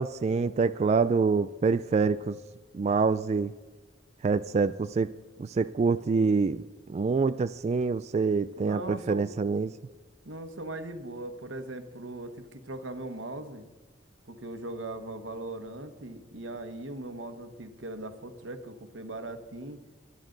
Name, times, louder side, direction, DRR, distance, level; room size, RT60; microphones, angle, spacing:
voice 1, 0.0-2.4 2.7-3.5 4.2-5.1 5.4-6.6 6.9-9.8, right 4 dB, 35° right, 12 dB, 0.3 m, -26 dB
voice 2, 8.6-9.3 10.2-13.7 14.2-19.8, right 2 dB, 90° right, 8 dB, 1.3 m, -39 dB
21.5 x 11.0 x 3.9 m, 1.3 s
head